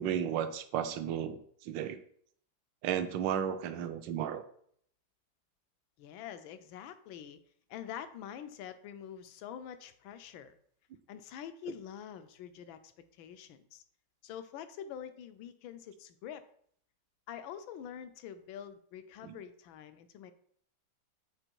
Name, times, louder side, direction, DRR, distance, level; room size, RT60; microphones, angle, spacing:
voice 1, 0.0-1.4 1.6-2.0 2.8-4.4 19.2-19.4, right 9 dB, 75° right, 10 dB, 1.2 m, -33 dB
voice 2, 6.0-7.4 7.7-10.6 11.1-13.8 14.2-16.4 17.3-20.3, left 9 dB, 80° left, 11 dB, 1.4 m, -46 dB
7.8 x 3.7 x 4.5 m, 0.63 s
omnidirectional pair, 2.1 m